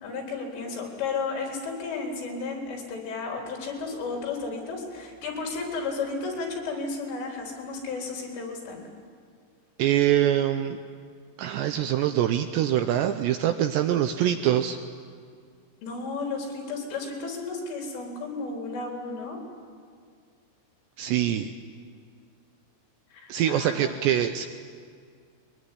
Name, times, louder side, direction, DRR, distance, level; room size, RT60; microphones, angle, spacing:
voice 1, 0.0-8.8 15.8-19.4 23.1-23.9, left 4 dB, 75° left, 0 dB, 6.6 m, -33 dB
voice 2, 9.8-10.8 11.4-14.8 21.0-21.5 23.3-24.5, right 11 dB, 80° right, 8 dB, 2.6 m, -24 dB
23.0 x 21.5 x 10.0 m, 2.1 s
omnidirectional pair, 5.7 m